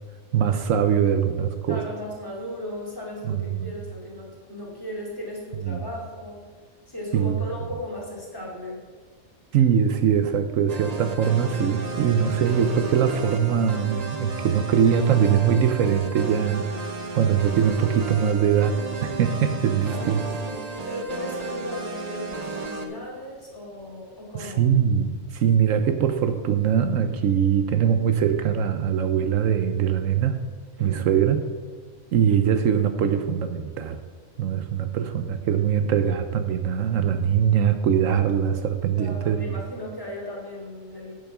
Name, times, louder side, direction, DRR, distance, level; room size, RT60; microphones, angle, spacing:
voice 1, 0.3-1.8 3.3-3.7 5.7-5.8 7.1-7.4 9.5-16.7 17.1-20.3 24.3-30.4 30.8-31.4 32.1-34.0 34.4-39.4, right 8 dB, 75° right, 8 dB, 1.0 m, -22 dB
voice 2, 1.7-6.5 6.9-8.8 19.8-24.6 30.8-31.1 39.0-41.1, left 1 dB, 15° left, -4 dB, 2.6 m, -36 dB
sound 1, 10.7-22.9, right 3 dB, 35° right, 0.8 m, -34 dB
8.7 x 7.1 x 6.0 m, 1.5 s
omnidirectional pair, 1.4 m